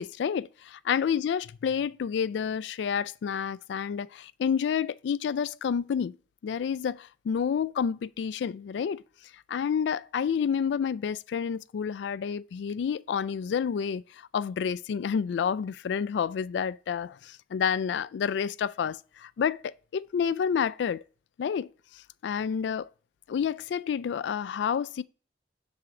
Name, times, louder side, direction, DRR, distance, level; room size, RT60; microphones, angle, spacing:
voice 1, 0.0-6.2 6.4-9.0 9.5-21.0 21.4-21.7 22.2-22.9 23.3-25.0, left 7 dB, 80° left, 0.3 m, -29 dB
7.6 x 3.7 x 5.9 m
head